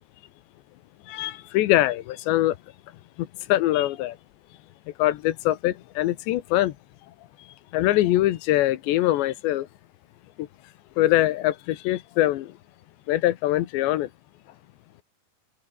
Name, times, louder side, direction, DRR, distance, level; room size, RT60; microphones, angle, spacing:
voice 1, 1.1-2.6 3.2-4.2 5.0-6.8 7.4-7.5 7.7-9.7 10.4-10.5 11.0-12.6 13.1-14.1, left 15 dB, 80° left, 3.4 m, -23 dB
omnidirectional pair, 5.1 m